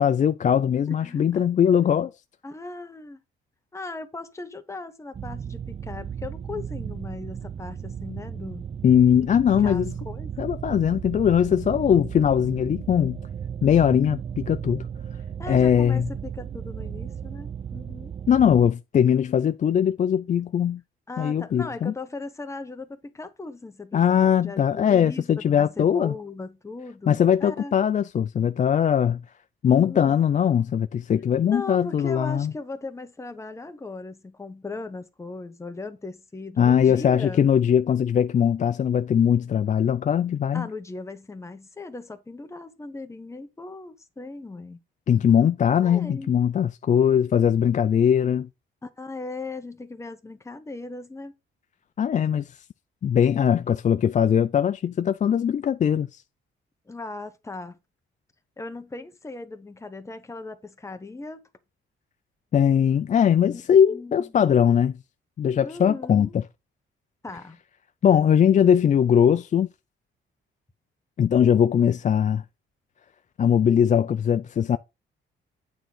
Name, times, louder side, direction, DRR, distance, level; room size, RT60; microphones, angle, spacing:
voice 1, 0.0-2.1 8.8-9.9 10.4-13.2 13.6-14.8 15.5-16.1 18.3-20.8 21.2-21.9 23.9-26.1 27.1-29.2 29.6-32.5 36.6-40.7 45.1-48.5 52.0-52.5 53.0-56.1 62.5-65.0 65.4-66.4 68.0-69.7 71.2-72.4 73.4-74.8, left 8 dB, 35° left, 0.4 m, -20 dB
voice 2, 1.0-1.5 2.4-3.2 3.7-8.7 9.3-10.3 15.4-18.2 21.1-27.7 29.7-30.2 31.4-37.4 40.5-44.8 45.8-46.3 48.8-51.3 56.9-57.8 58.6-61.5 63.5-63.6 63.9-64.3 65.6-66.4 67.2-67.6, left 3 dB, 15° left, 1.0 m, -38 dB
sound 1, 5.1-18.7, right 8 dB, 30° right, 0.4 m, -35 dB
9.0 x 3.8 x 6.2 m
cardioid pair, 120°, 21 cm